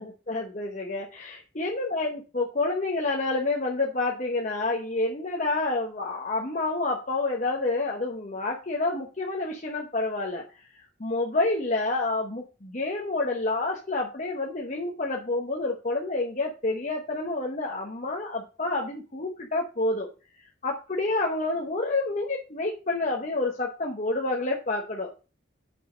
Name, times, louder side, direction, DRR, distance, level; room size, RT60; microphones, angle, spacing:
voice 1, 0.0-10.4 11.0-20.1 20.6-25.1, left 2 dB, 40° left, 0 dB, 1.0 m, -28 dB
6.3 x 5.5 x 5.0 m, 0.33 s
head